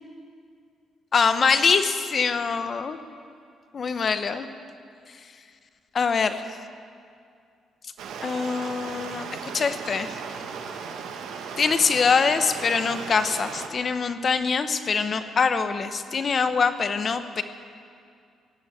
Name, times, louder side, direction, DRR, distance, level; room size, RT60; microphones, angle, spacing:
voice 1, 1.1-3.0 3.7-4.5 5.9-6.4 8.2-9.3 9.5-10.1 11.6-17.4, left 5 dB, 45° left, 10 dB, 0.9 m, -24 dB
Stream, 8.0-13.7, right 6 dB, 85° right, 1.2 m, -36 dB
16.0 x 7.9 x 8.8 m, 2.3 s
cardioid pair, 90°, 0 cm